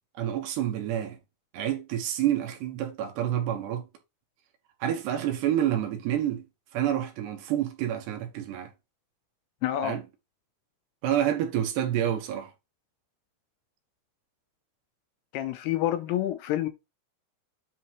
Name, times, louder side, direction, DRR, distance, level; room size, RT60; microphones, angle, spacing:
voice 1, 0.2-1.2 1.5-3.8 4.8-6.5 6.7-8.7 9.8-10.1 11.0-12.5, right 11 dB, 70° right, 3.6 m, -28 dB
voice 2, 9.6-10.0 15.3-16.7, left 12 dB, 80° left, 2.5 m, -28 dB
9.6 x 4.0 x 4.7 m
omnidirectional pair, 5.1 m